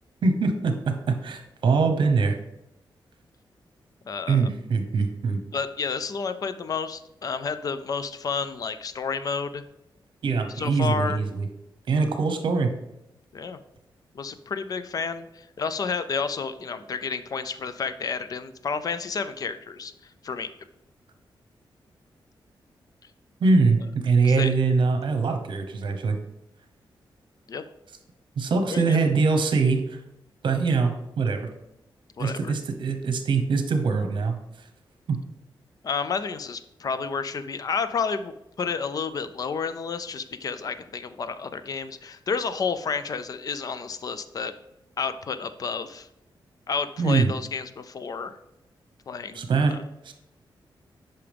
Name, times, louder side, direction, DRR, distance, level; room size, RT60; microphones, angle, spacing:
voice 1, 0.2-2.4 4.3-5.4 10.2-11.5 11.9-12.7 23.4-26.2 28.4-30.0 30.4-31.5 32.2-34.7 35.1-35.2 47.0-47.3 49.3-49.8 50.0-50.1, right 4 dB, 65° right, 6 dB, 1.0 m, -23 dB
voice 2, 4.1-4.5 5.5-9.6 10.5-11.2 13.3-13.6 14.1-19.9 20.2-20.5 24.2-24.5 27.5-27.6 28.7-29.0 32.2-32.5 35.8-44.5 45.0-46.1 46.7-48.4 49.1-49.8, left 5 dB, 45° left, 12 dB, 0.5 m, -30 dB
8.6 x 5.8 x 3.5 m, 0.88 s
wide cardioid pair, 155°, 9 cm